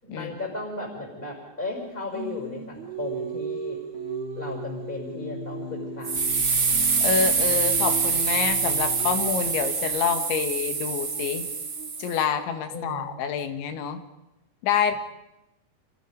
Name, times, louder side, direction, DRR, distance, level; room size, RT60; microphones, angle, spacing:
voice 1, 0.0-3.8 4.3-6.4 12.7-13.2, left 2 dB, 10° left, -1 dB, 5.9 m, -35 dB
Singing, 2.1-6.5 6.7-12.7, right 7 dB, 75° right, 4.5 m, -38 dB
sound 1, 3.9-9.6, left 10 dB, 55° left, 4.3 m, -40 dB
sound 2, 6.0-12.2, right 5 dB, 40° right, 1.7 m, -25 dB
voice 2, 7.0-11.4 12.0-14.0 14.6-14.9, left 7 dB, 75° left, 8 dB, 3.9 m, -27 dB
30.0 x 27.5 x 5.3 m, 0.91 s
omnidirectional pair, 5.5 m